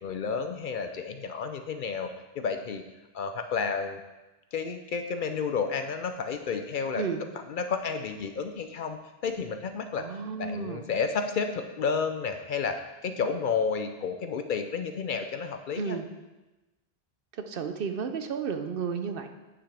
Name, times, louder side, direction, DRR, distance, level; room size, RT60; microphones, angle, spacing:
voice 1, 0.0-2.1 2.4-2.8 3.1-4.0 4.5-7.0 7.5-10.0 10.4-12.8 13.0-16.0, left 5 dB, 60° left, 7 dB, 0.6 m, -31 dB
voice 2, 10.0-10.8 15.7-16.0 17.3-19.3, right 6 dB, 65° right, 7 dB, 0.8 m, -32 dB
9.4 x 5.8 x 3.3 m, 1.1 s
omnidirectional pair, 1.0 m